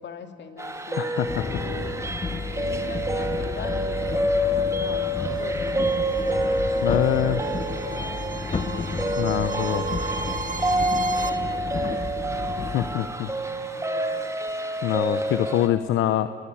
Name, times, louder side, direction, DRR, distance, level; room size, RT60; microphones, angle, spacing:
voice 1, 0.0-2.1 2.5-6.7 7.6-8.9 10.2-10.7 11.2-14.4, left 6 dB, 65° left, 7 dB, 2.4 m, -42 dB
sound 1, 0.6-15.7, right 1 dB, 15° right, 2.4 m, -28 dB
voice 2, 1.0-1.3 6.8-7.4 9.2-9.8 12.7-13.3 14.8-16.3, left 12 dB, 85° left, 12 dB, 0.8 m, -24 dB
sound 2, 1.3-13.0, left 4 dB, 30° left, 1.0 m, -32 dB
sound 3, 5.3-11.3, right 4 dB, 40° right, 2.3 m, -35 dB
29.0 x 19.0 x 9.4 m, 2.1 s
cardioid pair, 90°, 20 cm